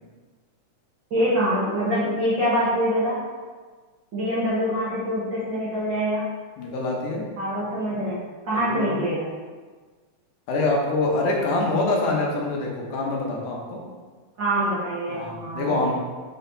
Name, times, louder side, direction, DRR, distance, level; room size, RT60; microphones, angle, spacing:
voice 1, 1.1-3.2 4.1-6.2 7.4-9.2 14.4-15.9, equal, 50° right, -9 dB, 1.5 m, -25 dB
voice 2, 6.6-7.3 8.5-9.0 10.5-13.8 15.1-15.9, left 2 dB, 85° left, -2 dB, 2.6 m, -25 dB
6.1 x 4.3 x 4.0 m, 1.4 s
omnidirectional pair, 3.5 m